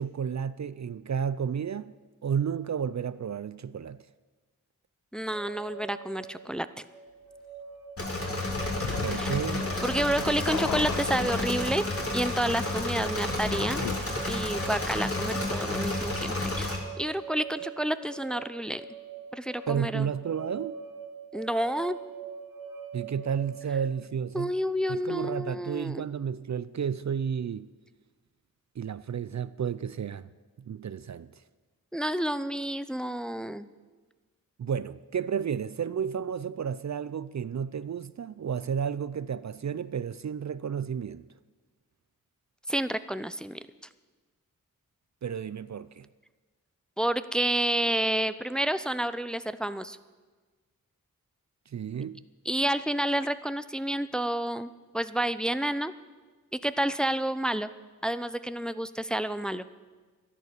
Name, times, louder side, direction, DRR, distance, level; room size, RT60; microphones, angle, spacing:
voice 1, 0.0-1.9 2.2-4.0 9.0-9.7 19.7-20.8 22.9-24.5 24.9-27.7 28.8-30.3 30.6-31.3 34.6-41.3 45.2-46.1 51.7-52.2, right 7 dB, 50° right, 0.5 m, -32 dB
voice 2, 5.1-6.9 9.1-9.3 9.8-11.9 12.1-13.9 14.3-18.8 19.3-20.1 21.3-22.0 24.3-26.0 31.9-33.7 42.7-43.6 47.0-50.0 52.5-55.9 56.6-57.7 58.0-59.7, right 1 dB, ahead, 0.6 m, -29 dB
sound 1, 5.2-24.0, right 6 dB, 85° right, 2.1 m, -44 dB
Engine / Mechanisms, 8.0-16.8, left 2 dB, 40° left, 3.2 m, -31 dB
sound 2, 8.4-14.0, left 9 dB, 90° left, 0.6 m, -37 dB
12.0 x 11.0 x 8.3 m
cardioid pair, 45°, 35 cm